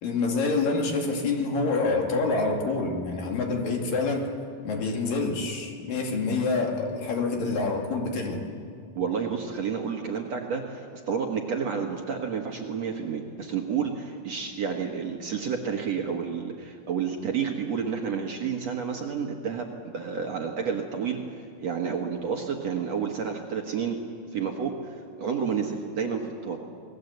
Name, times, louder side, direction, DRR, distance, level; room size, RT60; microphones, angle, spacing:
voice 1, 0.0-4.3 4.6-8.4, left 3 dB, 65° left, 1 dB, 4.0 m, -27 dB
voice 2, 9.0-21.2 21.6-24.0 24.3-26.6, right 6 dB, 55° right, 1 dB, 2.2 m, -30 dB
28.5 x 20.5 x 8.1 m, 2.3 s
omnidirectional pair, 4.4 m